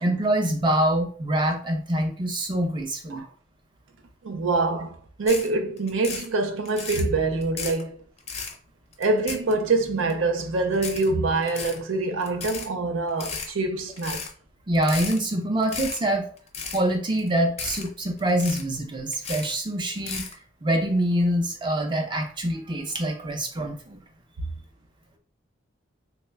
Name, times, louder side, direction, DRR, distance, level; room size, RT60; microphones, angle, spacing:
voice 1, 0.0-3.2 14.7-16.3 16.7-20.2 20.6-24.0, right 1 dB, 25° right, 0.5 m, -25 dB
voice 2, 4.2-7.9 9.0-14.3, right 3 dB, 80° right, 0.5 m, -25 dB
sound 1, 5.3-5.5 5.8-6.3 6.6-7.1 7.4-7.8 8.2-8.5 8.9-9.7 10.1-10.2 10.7-11.1 11.4-11.8 12.2-12.7 13.1-13.5 14.0-14.3 14.7-15.2 15.6-16.0 16.4-16.8 17.1-17.3 17.6-17.9 18.2-18.8 19.1-19.5 19.9-20.3, left 5 dB, 30° left, 0.5 m, -34 dB
3.0 x 2.2 x 3.3 m
head